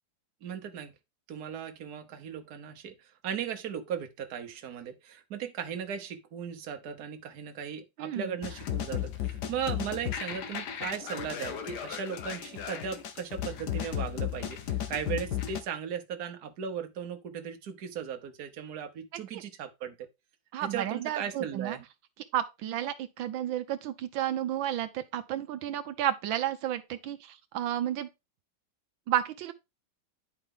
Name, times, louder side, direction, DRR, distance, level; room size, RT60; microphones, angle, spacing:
voice 1, 0.4-0.9 1.3-20.1 20.6-21.8, right 8 dB, 60° right, 1.4 m, -37 dB
voice 2, 8.0-8.3 20.5-21.8 22.3-28.1 29.1-29.5, right 11 dB, 80° right, 1.4 m, -32 dB
sound 1, 8.4-15.6, left 10 dB, 65° left, 1.4 m, -35 dB
10.0 x 4.8 x 3.7 m
omnidirectional pair, 2.1 m